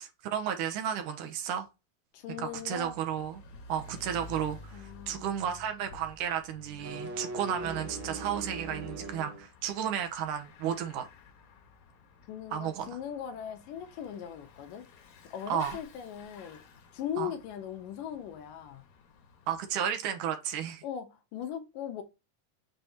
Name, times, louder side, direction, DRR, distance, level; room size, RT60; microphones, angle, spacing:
voice 1, 0.0-1.7 2.4-3.4 3.7-11.1 12.5-12.9 15.5-15.8 17.2-17.3 19.5-20.8, right 9 dB, 75° right, 2.5 m, -33 dB
voice 2, 2.1-3.0 4.7-5.6 12.3-14.8 15.3-16.6 16.9-18.9 20.8-22.0, left 9 dB, 85° left, 2.7 m, -39 dB
Bicycle / Mechanisms, 2.2-19.8, left 2 dB, 65° left, 2.6 m, -53 dB
sound 1, 6.7-9.5, right 2 dB, 50° right, 1.6 m, -40 dB
6.8 x 5.7 x 2.8 m
omnidirectional pair, 3.8 m